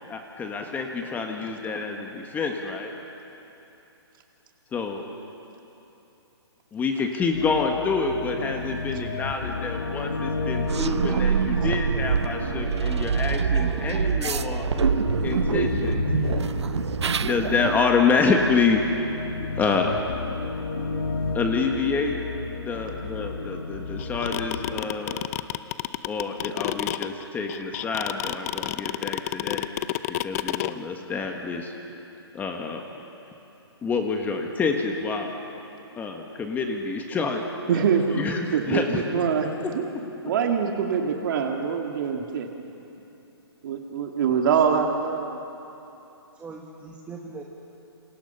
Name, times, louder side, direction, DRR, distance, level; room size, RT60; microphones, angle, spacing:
voice 1, 0.1-2.9 4.7-5.0 6.7-14.7 15.2-16.1 17.2-19.1 19.4-20.1 21.3-22.2 22.5-25.2 26.0-29.7 30.2-31.7 32.3-32.8 33.8-35.3 36.0-37.8 38.1-39.2, left 4 dB, 10° left, 3 dB, 1.6 m, -27 dB
sound 1, 7.3-24.8, left 4 dB, 65° left, 4.1 m, -32 dB
sound 2, 10.7-17.8, right 7 dB, 90° right, 0.5 m, -25 dB
sound 3, 24.0-30.7, left 15 dB, 35° left, 0.6 m, -28 dB
voice 2, 37.7-38.1 38.5-39.5 39.7-39.8 40.2-42.5 43.6-45.4, right 7 dB, 50° right, 2 dB, 2.3 m, -24 dB
voice 3, 44.3-44.8 46.3-47.4, right 4 dB, 10° right, -1 dB, 1.7 m, -40 dB
29.0 x 26.5 x 5.7 m, 2.9 s
hypercardioid pair, 145°, 14 cm